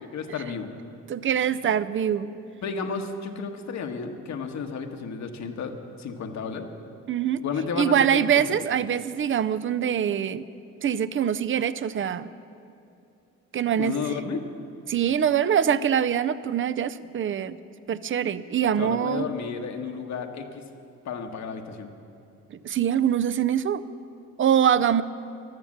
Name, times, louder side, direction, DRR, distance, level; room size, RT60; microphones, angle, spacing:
voice 1, 0.1-0.7 2.6-6.7 7.4-8.6 13.8-14.4 18.8-20.6 21.0-21.9, left 5 dB, 65° left, 4 dB, 1.4 m, -32 dB
voice 2, 1.1-2.3 7.1-7.4 7.8-10.5 10.8-12.3 13.5-13.9 14.9-17.6 17.9-19.3 22.5-23.8 24.4-25.0, right 9 dB, 40° right, 16 dB, 0.6 m, -24 dB
14.0 x 12.0 x 7.3 m, 2.6 s
cardioid pair, 90°, 30 cm